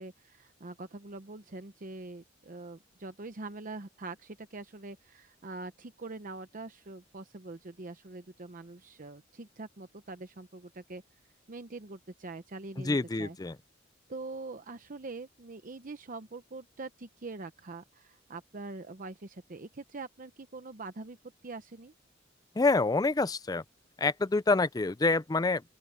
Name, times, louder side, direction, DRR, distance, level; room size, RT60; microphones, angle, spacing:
voice 1, 0.0-11.0 11.5-13.4 14.1-21.2 21.4-21.9, right 3 dB, 45° right, 0.8 m, -44 dB
voice 2, 12.8-13.6 22.6-23.6 24.0-25.6, left 3 dB, 20° left, 0.4 m, -27 dB
open air
head